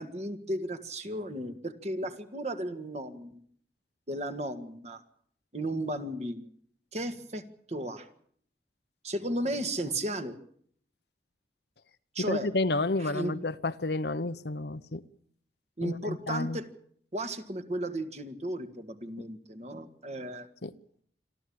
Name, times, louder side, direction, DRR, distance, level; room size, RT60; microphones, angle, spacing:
voice 1, 0.0-3.4 4.1-5.0 5.5-6.5 6.9-8.1 9.0-10.4 12.1-12.5 13.0-13.4 15.8-16.7 17.1-20.5, right 1 dB, 40° right, 1.8 m, -34 dB
voice 2, 12.3-15.0 15.8-16.6 20.6-20.7, left 2 dB, 65° left, 0.9 m, -30 dB
26.5 x 13.5 x 8.7 m
head